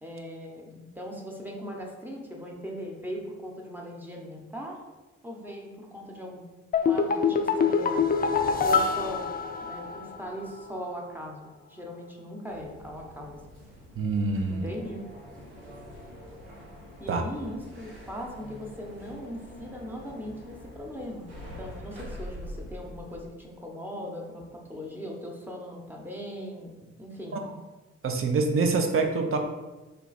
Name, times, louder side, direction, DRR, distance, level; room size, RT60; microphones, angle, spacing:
voice 1, 0.0-4.8 5.2-6.4 6.8-8.1 8.6-9.3 9.6-13.4 14.5-15.0 17.0-27.4, equal, 5° right, -1 dB, 0.9 m, -39 dB
sound 1, 6.7-10.2 10.4-10.5, left 5 dB, 30° left, 0.4 m, -25 dB
sound 2, 12.5-23.2, equal, 80° right, 0.9 m, -45 dB
voice 2, 13.9-14.6 17.1-17.2 27.3-27.5 28.0-29.4, right 4 dB, 40° right, 5 dB, 0.6 m, -26 dB
3.3 x 2.2 x 4.1 m, 1.2 s
hypercardioid pair, 40°, 34 cm